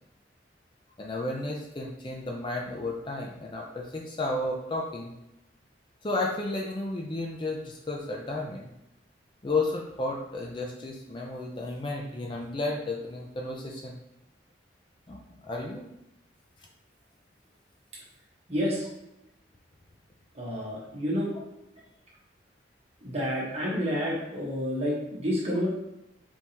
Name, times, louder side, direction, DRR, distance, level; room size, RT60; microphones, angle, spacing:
voice 1, 1.0-5.1 6.0-8.7 9.4-14.0 15.1-15.8 16.6-16.7, left 2 dB, 25° left, 0 dB, 0.4 m, -33 dB
voice 2, 18.5-18.9 20.3-21.3 23.0-25.7, equal, 35° right, -5 dB, 1.2 m, -29 dB
4.4 x 3.4 x 2.9 m, 0.88 s
head